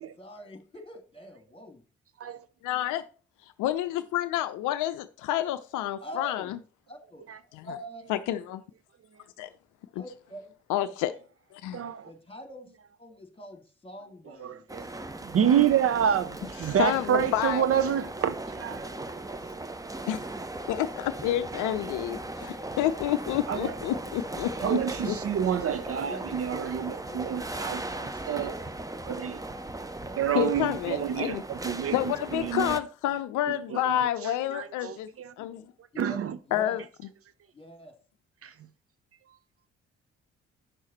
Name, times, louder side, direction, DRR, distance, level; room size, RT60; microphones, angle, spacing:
voice 1, 0.2-1.8 6.0-6.6 6.9-7.2 7.6-8.1 9.9-10.4 10.8-11.1 12.0-12.7 13.0-15.0 23.6-24.0 24.6-25.6 26.1-26.4 26.8-27.2 27.5-27.7 27.9-28.1 35.9-36.2 36.5-36.8 37.5-37.9, equal, 15° left, 2.3 m, -44 dB
voice 2, 2.6-3.0 3.4-6.6 7.5-7.7 8.1-8.6 9.4-9.5 10.0-10.1 10.7-11.1 11.6-11.8 16.6-17.7 20.1-20.2 20.7-25.1 30.3-31.4 31.9-35.1 35.4-35.7 36.5-36.8, left 12 dB, 65° left, 0.6 m, -29 dB
voice 3, 11.7-12.1 14.4-14.9 15.2-18.9 19.3-19.4 23.5-23.7 24.6-27.8 28.3-28.7 29.1-29.4 30.2-32.0 32.3-32.8 33.7-35.3 36.0-36.4 38.4-38.5, right 9 dB, 40° right, 0.6 m, -28 dB
sound 1, 14.7-32.8, right 2 dB, 10° right, 0.9 m, -38 dB
9.1 x 6.4 x 4.2 m
figure-of-eight pair, 40°, 34 cm